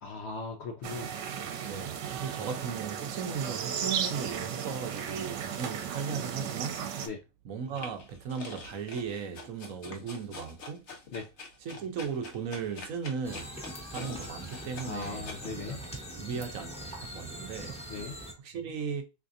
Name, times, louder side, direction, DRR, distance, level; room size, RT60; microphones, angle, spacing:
voice 1, 0.0-1.1 7.0-7.2 11.1-11.2 14.9-15.8 17.9-18.2, left 4 dB, 75° left, 0.6 m, -38 dB
sound 1, 0.8-7.1, right 8 dB, 80° right, 1.3 m, -35 dB
voice 2, 1.7-6.8 7.4-10.9 11.6-13.6 13.9-17.8 18.4-19.0, right 6 dB, 60° right, 1.0 m, -37 dB
sound 2, 7.7-15.4, left 4 dB, 50° left, 1.0 m, -45 dB
sound 3, 13.2-18.3, right 1 dB, 5° left, 0.8 m, -42 dB
3.6 x 3.3 x 2.5 m
omnidirectional pair, 1.9 m